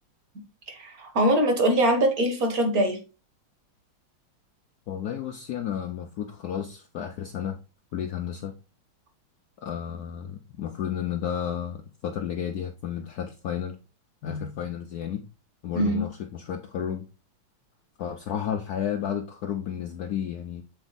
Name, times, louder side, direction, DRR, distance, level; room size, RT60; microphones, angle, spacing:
voice 1, 0.7-3.0 15.8-16.0, right 1 dB, 45° right, 1.8 m, -23 dB
voice 2, 4.9-7.6 7.9-8.5 9.6-13.8 14.2-15.2 15.6-17.0 18.0-20.6, left 9 dB, 70° left, 0.9 m, -32 dB
7.1 x 4.4 x 4.0 m
omnidirectional pair, 2.3 m